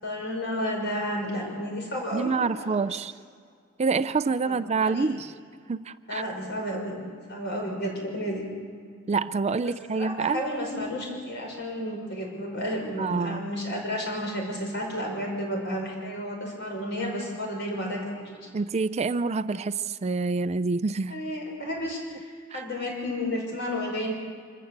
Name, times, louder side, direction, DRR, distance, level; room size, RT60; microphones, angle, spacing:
voice 1, 0.0-2.7 4.5-5.1 6.1-7.0 7.3-8.5 9.6-18.5 21.1-24.1, equal, 60° left, 0 dB, 6.0 m, -32 dB
voice 2, 2.1-3.1 3.8-5.3 5.7-6.2 9.1-10.4 13.0-13.5 18.5-21.2 22.5-22.6, right 4 dB, 35° right, 13 dB, 0.4 m, -27 dB
26.0 x 14.5 x 8.1 m, 2.2 s
head